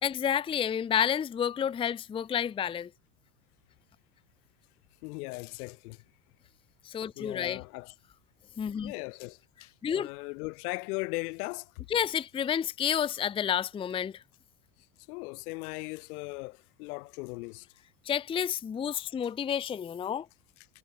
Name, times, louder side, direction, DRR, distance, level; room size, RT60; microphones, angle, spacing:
voice 1, 0.0-2.9 6.8-7.6 8.6-8.9 9.8-10.1 11.9-14.2 18.1-20.3, left 9 dB, 10° left, 0.6 m, -30 dB
voice 2, 5.0-6.0 7.1-7.9 8.8-11.7 15.1-17.7, left 26 dB, 75° left, 1.7 m, -38 dB
cardioid pair, 165°, 45 cm